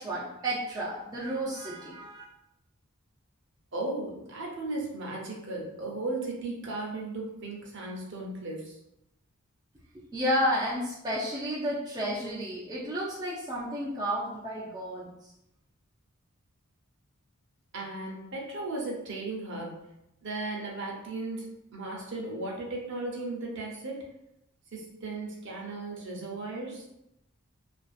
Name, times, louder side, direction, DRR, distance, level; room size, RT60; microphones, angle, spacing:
voice 1, 0.0-2.2 9.9-15.3, equal, 20° right, -6 dB, 0.3 m, -32 dB
voice 2, 3.7-8.8 17.7-19.9 20.2-21.5 21.7-24.0 24.7-26.9, right 2 dB, 55° right, -2 dB, 0.6 m, -36 dB
2.5 x 2.3 x 2.4 m, 0.84 s
head